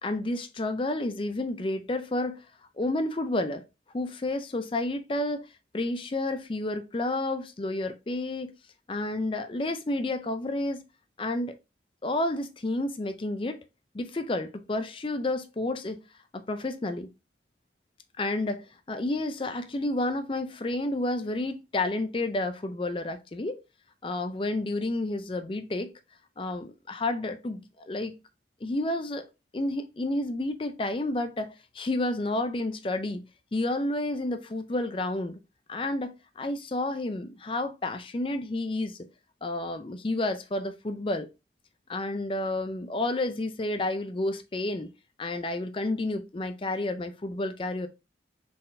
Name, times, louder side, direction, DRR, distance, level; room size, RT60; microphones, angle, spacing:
voice 1, 0.0-2.4 2.8-3.6 3.9-5.5 5.7-8.5 8.9-10.8 11.2-11.5 12.0-13.6 13.9-16.0 16.3-17.1 18.2-23.6 24.0-25.9 26.4-28.1 28.6-29.2 29.5-33.2 33.5-35.3 35.7-39.0 39.4-41.3 41.9-44.9 45.2-47.9, left 2 dB, 30° left, 0.4 m, -30 dB
4.3 x 3.8 x 2.6 m
head